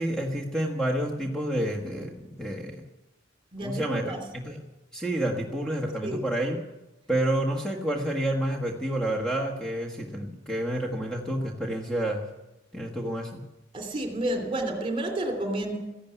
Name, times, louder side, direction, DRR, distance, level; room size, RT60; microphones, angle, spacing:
voice 1, 0.0-2.8 3.6-4.1 4.4-4.6 4.9-6.6 7.1-12.3 12.7-13.4, right 1 dB, 5° left, 0 dB, 1.4 m, -29 dB
voice 2, 3.5-4.2 6.0-6.2 13.7-15.8, right 1 dB, 30° right, 3 dB, 2.8 m, -30 dB
14.5 x 11.5 x 8.2 m, 1.0 s
head